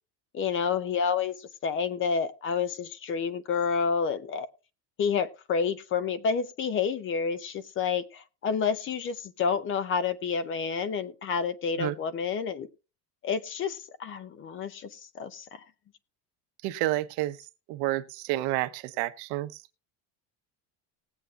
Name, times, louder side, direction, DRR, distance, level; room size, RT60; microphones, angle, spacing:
voice 1, 0.3-4.5 5.0-12.7 13.2-15.6, left 6 dB, 30° left, 0.5 m, -29 dB
voice 2, 16.6-17.4 17.7-19.6, right 16 dB, 80° right, 0.9 m, -30 dB
20.0 x 8.1 x 2.3 m
cardioid pair, 175°, 45 cm